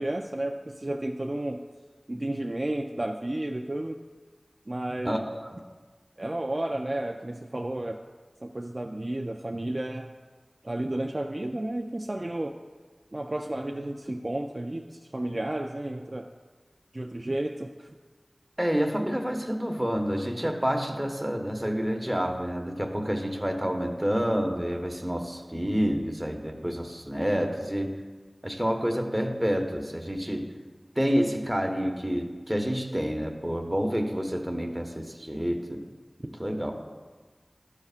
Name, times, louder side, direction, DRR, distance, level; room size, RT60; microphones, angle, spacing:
voice 1, 0.0-1.6 2.1-4.0 4.7-5.2 6.2-8.0 8.4-10.1 10.6-12.6 13.1-16.3 16.9-17.9, right 1 dB, 45° right, 3 dB, 0.3 m, -32 dB
voice 2, 5.0-5.6 18.6-27.9 28.4-30.5 31.0-35.8 36.4-36.7, equal, 15° right, 3 dB, 0.9 m, -28 dB
12.0 x 6.6 x 2.4 m, 1.4 s
wide cardioid pair, 45°, 0 cm